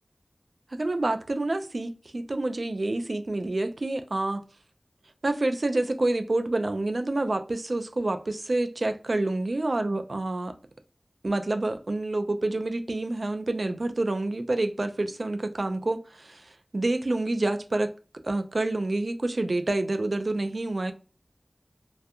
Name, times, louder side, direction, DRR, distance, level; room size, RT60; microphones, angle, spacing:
voice 1, 0.7-4.4 5.2-10.5 11.2-17.9 18.2-20.9, right 2 dB, 70° right, 0.3 m, -28 dB
2.6 x 2.3 x 2.3 m
wide cardioid pair, 55°, 0 cm